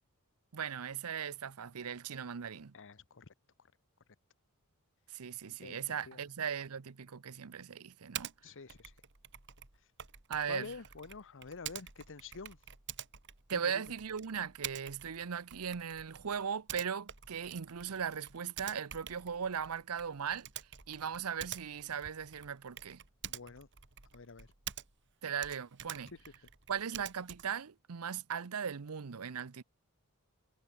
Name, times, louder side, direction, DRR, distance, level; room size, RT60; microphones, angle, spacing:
voice 1, 0.5-2.7 5.1-8.3 10.3-10.7 13.5-20.5 20.9-23.0 25.2-26.1 26.7-29.6, right 7 dB, 80° right, 0.7 m, -38 dB
voice 2, 2.7-3.3 5.6-6.2 8.4-8.9 10.5-12.6 13.5-13.9 23.3-23.7 24.1-24.5 26.1-26.2, left 4 dB, 60° left, 1.0 m, -48 dB
Typing, 8.1-8.4 8.7-25.1 25.4-27.6, right 10 dB, 55° right, 2.7 m, -48 dB
head